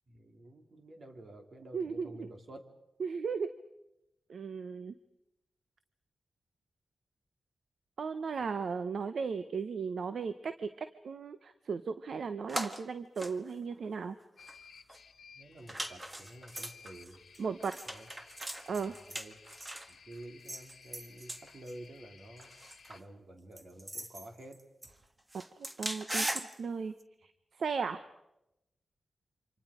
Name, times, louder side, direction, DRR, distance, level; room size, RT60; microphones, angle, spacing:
voice 1, 0.1-2.7 15.4-17.2 17.9-18.1 18.7-19.4 19.9-22.5 22.9-24.6, right 1 dB, 60° right, 5 dB, 3.0 m, -50 dB
voice 2, 1.7-2.3 3.0-3.5 4.3-4.9 8.0-14.2 17.4-17.8 18.7-18.9 25.6-26.9 27.2-27.3 27.6-28.0, right 5 dB, 75° right, 11 dB, 0.8 m, -36 dB
sound 1, 12.5-12.8 13.2-14.1 14.4-14.6 14.9-15.0 15.7-19.9 20.5-21.7 22.4-23.0 23.6-25.0 25.3-26.5 27.0-27.1, right 1 dB, 20° right, 1.5 m, -40 dB
sound 2, 14.4-23.0, left 6 dB, 80° left, 1.3 m, -57 dB
28.5 x 25.5 x 5.0 m, 0.89 s
cardioid pair, 80°, 0 cm